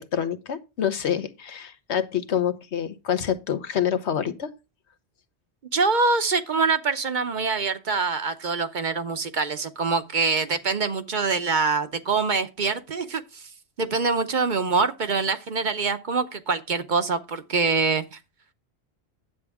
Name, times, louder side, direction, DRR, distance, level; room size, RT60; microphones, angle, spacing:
voice 1, 0.0-4.5, left 9 dB, 80° left, 1.2 m, -27 dB
voice 2, 5.7-13.4 13.8-18.2, right 4 dB, 50° right, 0.8 m, -24 dB
9.7 x 8.0 x 3.5 m
omnidirectional pair, 1.1 m